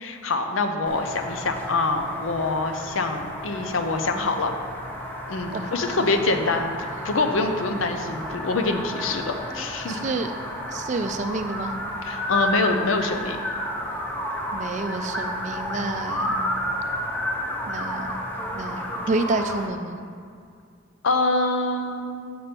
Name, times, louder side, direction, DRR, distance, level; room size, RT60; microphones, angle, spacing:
voice 1, 0.0-4.5 5.3-10.1 12.0-13.4 21.0-22.4, left 3 dB, 85° left, 6 dB, 0.6 m, -25 dB
sound 1, 0.9-19.7, equal, 10° left, 0.6 m, -31 dB
voice 2, 9.9-10.3 10.7-11.7 14.5-16.4 17.7-18.1 18.5-20.0, right 3 dB, 40° right, 7 dB, 0.4 m, -29 dB
6.9 x 5.1 x 4.4 m, 2.3 s
head